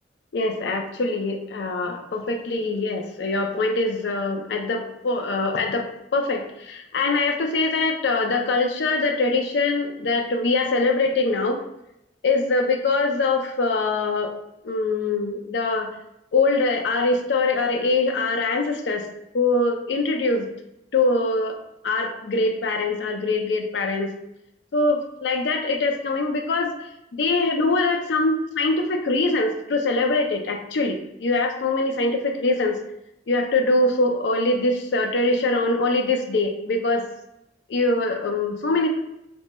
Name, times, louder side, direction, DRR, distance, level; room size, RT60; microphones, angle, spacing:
voice 1, 0.3-5.8 6.1-11.6 12.2-14.3 14.6-15.9 16.3-19.0 19.3-20.5 20.9-21.6 21.8-24.1 24.7-26.7 27.2-32.8 33.3-37.1 37.7-38.9, left 3 dB, 80° left, 3 dB, 0.5 m, -23 dB
2.9 x 2.2 x 4.1 m, 0.84 s
head